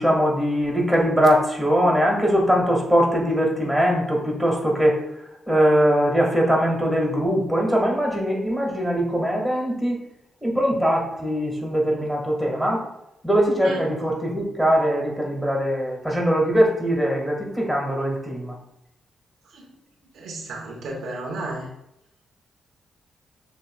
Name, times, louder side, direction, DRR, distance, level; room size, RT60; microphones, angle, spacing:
voice 1, 0.0-5.0 5.5-10.0 10.4-12.9 13.2-18.6, equal, ahead, -2 dB, 1.7 m, -21 dB
voice 2, 20.1-21.7, right 2 dB, 80° right, -2 dB, 1.1 m, -33 dB
6.9 x 3.1 x 2.3 m, 0.84 s
cardioid pair, 65°, 0 cm